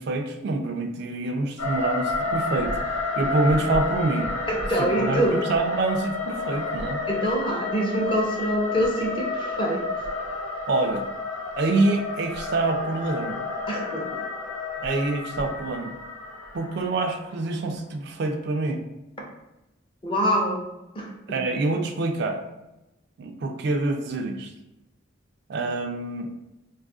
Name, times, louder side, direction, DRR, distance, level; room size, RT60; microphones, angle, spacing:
voice 1, 0.0-4.3 4.8-7.0 10.7-11.0 11.6-13.4 14.8-15.9 16.5-18.8 21.3-22.4 23.2-24.5 25.5-26.3, right 2 dB, 55° right, 5 dB, 0.3 m, -26 dB
sound 1, 1.6-17.6, left 3 dB, 85° left, 0.6 m, -30 dB
voice 2, 4.5-5.4 7.1-9.8 13.7-14.0 20.0-20.6 20.9-21.1, right 1 dB, 25° left, -1 dB, 0.6 m, -25 dB
2.6 x 2.4 x 3.7 m, 0.94 s
head